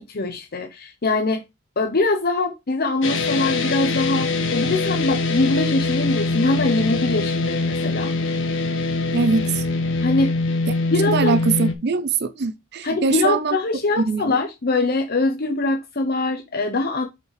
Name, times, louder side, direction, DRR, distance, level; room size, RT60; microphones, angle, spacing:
voice 1, 0.0-1.4 1.8-8.1 10.0-10.3 10.9-11.4 12.8-17.1, left 2 dB, 50° left, 0.8 m, -23 dB
sound 1, 3.0-11.7, left 3 dB, 65° left, 1.6 m, -23 dB
voice 2, 9.1-9.6 11.1-13.6 14.0-14.2, right 4 dB, 55° right, 0.6 m, -22 dB
8.5 x 5.5 x 3.2 m
head